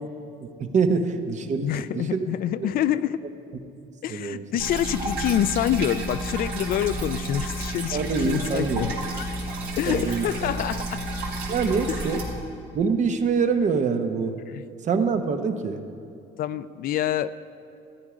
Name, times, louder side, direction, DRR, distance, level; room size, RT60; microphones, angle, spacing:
voice 1, 0.4-2.2 4.1-4.4 7.9-8.9 9.9-10.5 11.5-12.2 12.7-14.4 14.8-15.8, right 5 dB, 45° right, 7 dB, 0.9 m, -25 dB
voice 2, 1.6-3.2 4.0-9.3 9.8-11.0 11.9-12.0 14.5-14.6 16.4-17.3, left 11 dB, 60° left, 14 dB, 0.4 m, -27 dB
sound 1, 4.6-12.2, right 1 dB, 80° right, 2.4 m, -31 dB
13.5 x 9.6 x 4.9 m, 2.5 s
cardioid pair, 110°, 17 cm